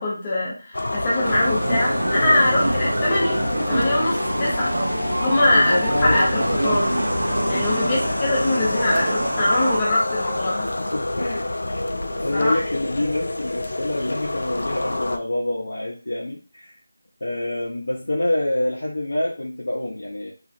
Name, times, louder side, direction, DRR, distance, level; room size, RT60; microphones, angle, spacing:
voice 1, 0.0-4.7 5.2-7.0 7.5-10.7 12.3-12.6, left 1 dB, 10° left, -7 dB, 0.6 m, -22 dB
sound 1, 0.7-15.2, left 2 dB, 55° left, 0.3 m, -27 dB
sound 2, 1.2-9.8, right 1 dB, 45° right, 0.5 m, -26 dB
voice 2, 5.5-6.2 10.8-11.5 12.1-16.7 17.2-20.3, left 1 dB, 70° left, -4 dB, 0.7 m, -26 dB
2.9 x 2.4 x 2.5 m, 0.34 s
figure-of-eight pair, 180°, 0 cm